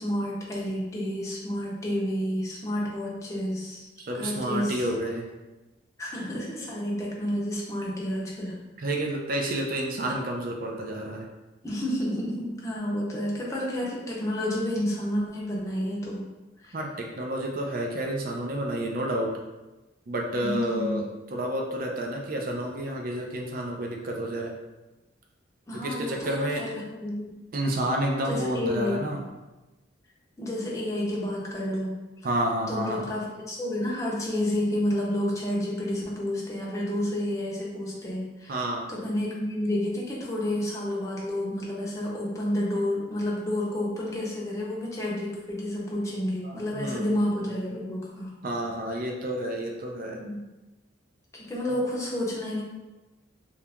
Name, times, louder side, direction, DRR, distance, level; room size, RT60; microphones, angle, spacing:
voice 1, 0.0-3.9 4.1-4.9 6.0-8.6 11.6-16.3 16.6-16.8 20.4-21.0 25.7-27.4 28.2-29.1 30.4-32.0 32.7-38.6 38.9-48.3 50.1-50.4 51.3-52.6, left 1 dB, 15° left, -5 dB, 0.6 m, -30 dB
voice 2, 4.1-5.2 8.8-11.3 16.7-16.9 17.2-19.3 20.1-21.0 21.3-24.5 25.8-26.6 27.5-29.2 32.2-33.0 38.5-38.9 46.4-47.1 48.4-50.2, right 1 dB, 50° right, 0 dB, 0.5 m, -30 dB
2.8 x 2.5 x 3.4 m, 1.1 s
head